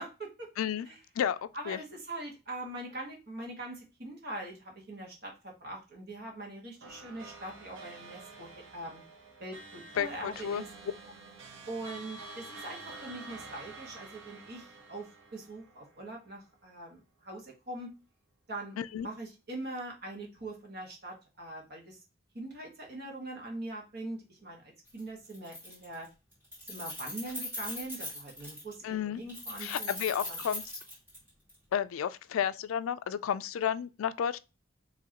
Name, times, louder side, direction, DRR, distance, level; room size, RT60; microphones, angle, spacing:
voice 1, 0.0-0.5 0.8-1.0 1.5-9.0 9.4-10.7 11.7-17.9 18.5-22.0 22.3-26.1 26.7-30.4, right 2 dB, 50° right, 1.5 m, -42 dB
voice 2, 1.2-1.8 10.0-10.6 18.8-19.1 28.8-29.2 29.6-30.6 31.7-34.4, left 8 dB, 85° left, 0.3 m, -32 dB
sound 1, 6.8-16.4, right 3 dB, 70° right, 1.0 m, -49 dB
Keys jangling, 24.9-25.0 25.3-26.1 26.3-28.7 29.3-31.5, left 1 dB, 10° right, 2.1 m, -40 dB
4.8 x 3.0 x 2.9 m
head